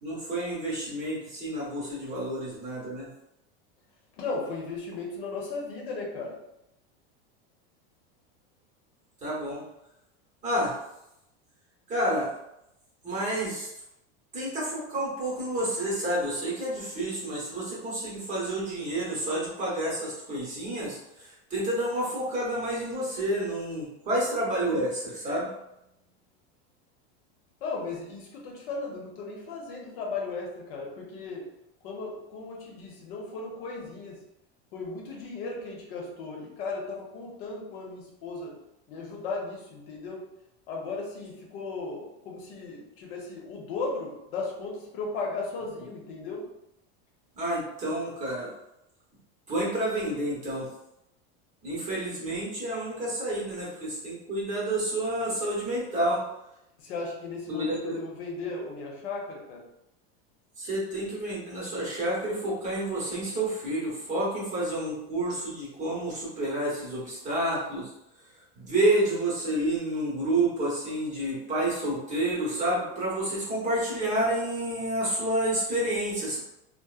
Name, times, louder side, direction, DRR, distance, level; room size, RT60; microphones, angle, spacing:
voice 1, 0.0-3.1 9.2-9.6 10.4-10.8 11.9-12.3 13.0-13.7 14.3-25.5 47.4-48.5 49.5-50.7 51.6-56.2 57.5-58.0 60.6-67.9 68.6-76.4, right 1 dB, 25° right, -6 dB, 0.9 m, -29 dB
voice 2, 4.1-6.4 27.6-31.5 31.8-34.2 34.7-38.6 38.9-40.2 40.7-46.5 56.8-59.6, left 3 dB, 70° left, -1 dB, 0.8 m, -36 dB
2.8 x 2.0 x 2.3 m, 0.86 s
supercardioid pair, 145°, 31 cm